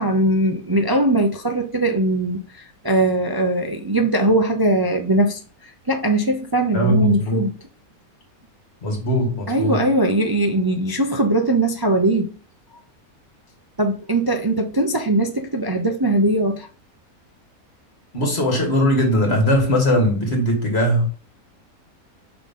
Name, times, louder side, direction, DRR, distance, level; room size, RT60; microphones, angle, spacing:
voice 1, 0.0-7.5 9.5-12.4 13.8-16.7, right 1 dB, 30° right, 0.4 m, -20 dB
voice 2, 6.7-7.4 8.8-9.8 18.1-21.0, equal, 45° left, 2.4 m, -19 dB
5.9 x 3.8 x 5.4 m
omnidirectional pair, 1.5 m